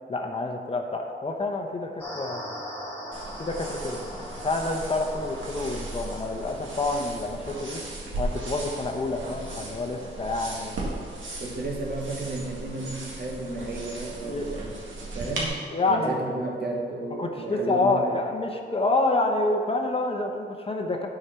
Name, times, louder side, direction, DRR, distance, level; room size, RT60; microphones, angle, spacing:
voice 1, 0.1-2.6 3.4-7.8 8.2-10.8 14.2-14.5 15.7-16.2 17.2-21.1, left 2 dB, 30° left, 3 dB, 0.8 m, -28 dB
sound 1, 2.0-7.6, equal, 10° left, 2.2 m, -40 dB
sound 2, 3.1-15.5, right 2 dB, 85° right, 1.9 m, -37 dB
voice 2, 11.4-18.2, right 2 dB, 55° right, -1 dB, 1.7 m, -33 dB
9.6 x 5.0 x 5.7 m, 2.1 s
wide cardioid pair, 120°, 20 cm